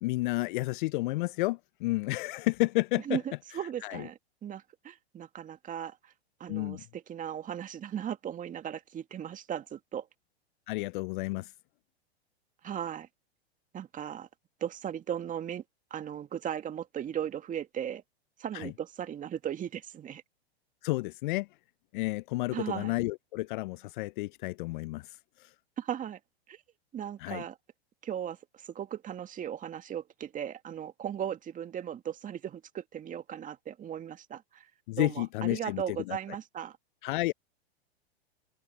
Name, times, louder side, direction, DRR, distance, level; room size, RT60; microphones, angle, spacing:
voice 1, 0.0-3.2 3.8-4.1 6.5-6.8 10.7-11.5 18.5-18.7 20.8-21.5 21.9-25.2 25.4-25.5 27.2-27.4 34.9-35.8 36.1-36.2 37.0-37.3, left 21 dB, 50° left, 0.5 m, -31 dB
voice 2, 3.1-6.1 6.4-10.1 12.6-13.1 13.7-14.3 14.6-15.6 15.9-18.0 18.4-20.2 22.5-23.0 25.8-26.2 26.5-26.6 26.9-27.6 28.0-34.7 35.0-36.8, right 9 dB, 25° right, 2.1 m, -37 dB
open air
hypercardioid pair, 110°, 32 cm